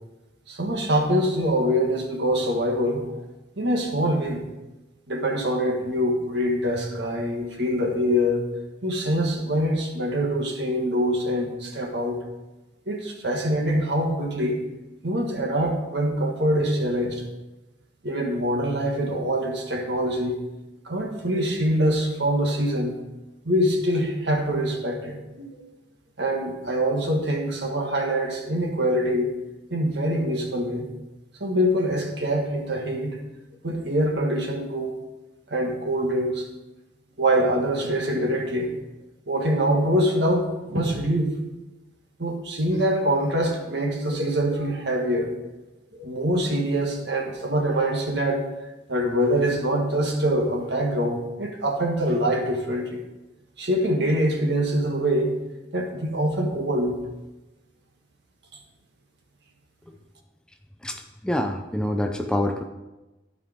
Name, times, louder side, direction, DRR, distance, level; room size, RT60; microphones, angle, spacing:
voice 1, 0.5-3.0 3.6-4.4 5.1-8.5 8.8-12.2 12.9-14.6 15.0-17.2 18.0-20.4 20.9-22.9 23.5-25.6 26.2-29.3 29.7-30.9 31.4-33.2 33.6-34.9 35.5-36.5 37.2-38.8 39.3-41.4 42.2-45.3 45.9-48.4 48.9-53.0 53.6-55.4 55.7-57.0, equal, 60° right, 1 dB, 1.6 m, -24 dB
voice 2, 60.8-62.6, left 1 dB, 5° left, 4 dB, 0.4 m, -26 dB
12.5 x 5.1 x 5.0 m, 1.0 s
head